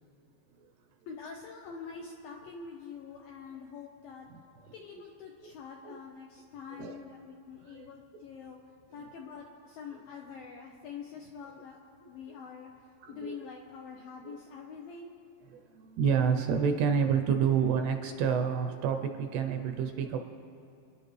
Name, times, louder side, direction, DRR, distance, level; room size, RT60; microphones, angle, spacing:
voice 1, 1.1-4.3 4.7-8.6 8.9-11.8 12.1-12.7 13.1-15.1, left 6 dB, 80° left, 0 dB, 2.1 m, -45 dB
voice 2, 13.0-13.4 14.2-14.4 15.5-20.2, right 7 dB, 80° right, 6 dB, 2.5 m, -29 dB
28.0 x 10.5 x 3.2 m, 2.7 s
omnidirectional pair, 5.2 m